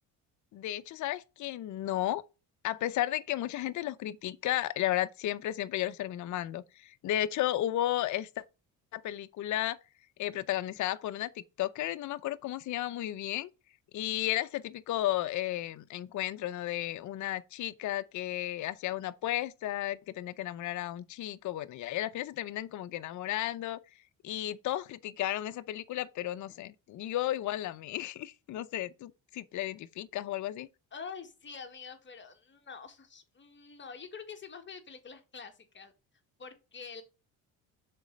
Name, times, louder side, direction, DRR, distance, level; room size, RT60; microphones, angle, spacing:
voice 1, 0.5-2.2 2.6-8.4 8.9-9.8 10.2-11.3 11.6-13.5 13.9-23.8 24.2-30.7, left 14 dB, 60° left, 0.6 m, -33 dB
voice 2, 30.9-35.9 36.4-37.0, left 5 dB, 30° left, 1.7 m, -46 dB
6.8 x 4.2 x 5.1 m
cardioid pair, 100°, 35 cm